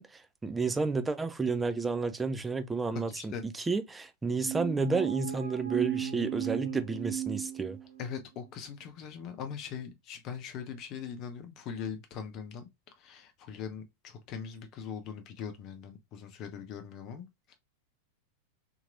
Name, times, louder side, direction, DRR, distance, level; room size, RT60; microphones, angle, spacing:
voice 1, 0.0-7.8, right 4 dB, 10° right, 0.4 m, -31 dB
voice 2, 3.1-3.4 8.0-12.7 13.0-17.6, left 7 dB, 35° left, 0.8 m, -41 dB
sound 1, 4.4-8.2, right 11 dB, 75° right, 0.4 m, -35 dB
2.9 x 2.8 x 2.5 m
figure-of-eight pair, 90°, 0 cm